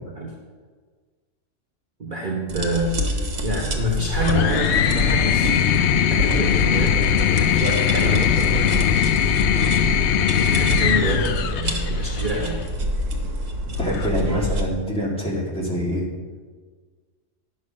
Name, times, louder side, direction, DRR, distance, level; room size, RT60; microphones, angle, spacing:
voice 1, 2.0-5.7 6.0-9.2 10.5-12.6, equal, 40° right, -2 dB, 1.2 m, -27 dB
sound 1, 2.5-14.6, equal, 80° right, 1.5 m, -27 dB
sound 2, 4.1-12.5 13.7-14.4, left 9 dB, 70° left, 0.8 m, -21 dB
voice 2, 13.8-16.1, equal, 5° left, -5 dB, 2.3 m, -25 dB
10.0 x 6.5 x 6.4 m, 1.5 s
omnidirectional pair, 1.3 m